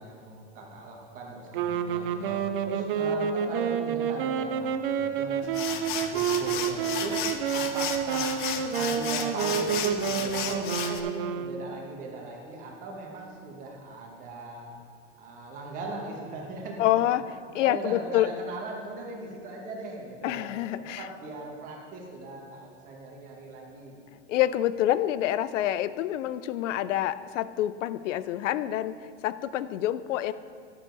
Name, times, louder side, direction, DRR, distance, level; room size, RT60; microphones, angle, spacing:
voice 1, 0.0-2.4 2.6-7.2 7.5-8.3 8.7-14.7 15.2-17.0 17.5-20.5 21.0-24.0, right 2 dB, 20° right, -1 dB, 1.3 m, -39 dB
sound 1, 1.5-11.9, right 7 dB, 50° right, 0.5 m, -29 dB
sound 2, 5.4-11.0, left 8 dB, 45° left, 0.6 m, -34 dB
voice 2, 16.8-17.2 17.5-18.3 20.2-21.1 24.3-29.0 29.2-30.3, left 13 dB, 90° left, 15 dB, 0.5 m, -27 dB
11.0 x 7.1 x 3.9 m, 2.1 s
supercardioid pair, 170°, 36 cm